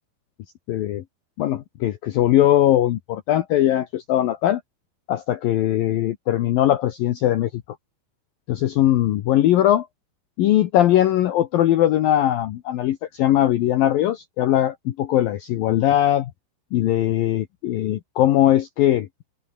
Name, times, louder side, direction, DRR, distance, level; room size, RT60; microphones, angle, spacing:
voice 1, 0.7-1.0 1.4-4.6 5.1-7.6 8.5-9.9 10.4-16.3 16.7-19.1, left 12 dB, 70° left, 2.2 m, -20 dB
omnidirectional pair, 5.5 m